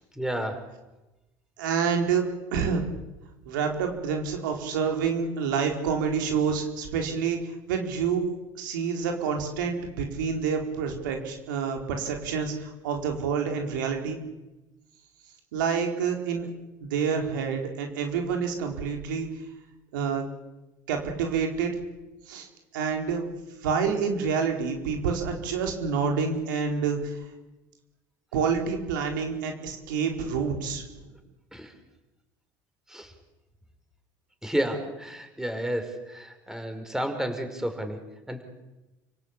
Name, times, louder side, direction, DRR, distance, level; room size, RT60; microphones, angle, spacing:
voice 1, 0.2-0.7 31.5-31.7 32.9-33.1 34.4-38.0 38.3-38.4, right 1 dB, 5° right, 6 dB, 5.5 m, -31 dB
voice 2, 1.6-2.8 3.4-14.2 15.5-16.5 16.8-19.3 19.9-20.3 20.9-21.8 22.3-22.5 22.7-23.4 23.6-27.3 28.3-30.8, right 6 dB, 90° right, 3 dB, 4.4 m, -28 dB
30.0 x 18.0 x 8.7 m, 1.0 s
supercardioid pair, 85°, 10 cm